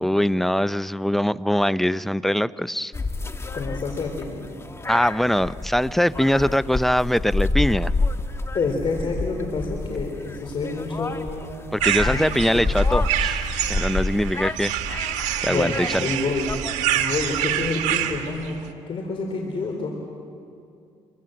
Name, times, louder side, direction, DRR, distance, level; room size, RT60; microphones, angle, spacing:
voice 1, 0.0-2.9 4.9-7.9 11.7-13.4 13.7-15.0 15.4-16.1, equal, ahead, 17 dB, 0.6 m, -22 dB
sound 1, 2.9-18.2, left 3 dB, 20° left, 1.5 m, -29 dB
voice 2, 3.5-4.5 8.5-11.5 12.0-12.4 15.5-16.5 16.9-19.9, left 3 dB, 50° left, 2 dB, 3.7 m, -28 dB
sound 2, 11.8-18.7, right 11 dB, 80° right, 1.7 m, -27 dB
26.5 x 23.5 x 7.8 m, 2.5 s
supercardioid pair, 75°, 12 cm